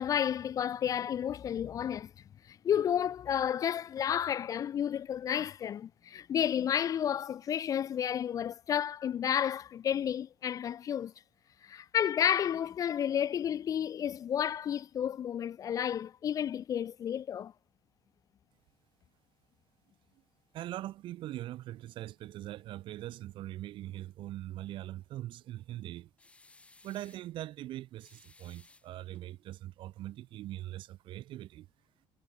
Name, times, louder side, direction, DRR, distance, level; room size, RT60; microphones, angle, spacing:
voice 1, 0.0-2.1 2.5-11.1 11.6-17.5, left 9 dB, 35° left, 0.5 m, -31 dB
voice 2, 20.5-26.1 26.8-31.7, right 14 dB, 60° right, 1.1 m, -42 dB
sound 1, 26.2-27.3 28.0-29.3, left 3 dB, 15° left, 3.2 m, -60 dB
cardioid pair, 150°, 10 cm